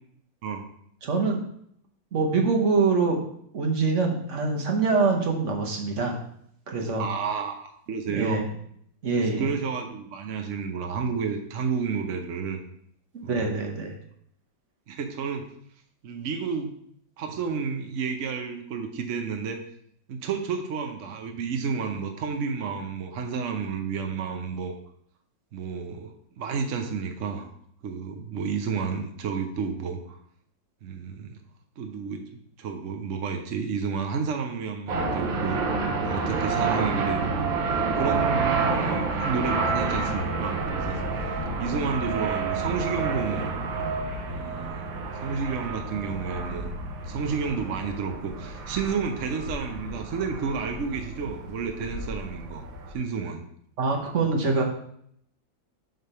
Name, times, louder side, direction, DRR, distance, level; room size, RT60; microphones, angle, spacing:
voice 1, 1.0-1.4 2.1-3.2 3.5-6.2 6.7-7.1 8.1-8.4 9.0-9.5 13.2-13.9 53.8-54.6, right 4 dB, 45° right, 2 dB, 1.2 m, -24 dB
voice 2, 7.0-8.6 9.1-12.6 13.2-13.4 14.9-15.5 16.0-16.7 17.2-19.6 20.1-24.7 25.5-27.5 27.8-30.2 30.8-31.4 31.8-32.3 32.6-35.6 36.0-37.5 37.9-41.0 41.6-43.5 44.3-44.9 45.2-46.7 47.1-52.6 52.9-53.4, right 5 dB, 60° right, 4 dB, 0.8 m, -31 dB
sound 1, 34.9-52.9, right 3 dB, 90° right, 1.7 m, -29 dB
7.7 x 3.4 x 5.5 m, 0.68 s
omnidirectional pair, 2.1 m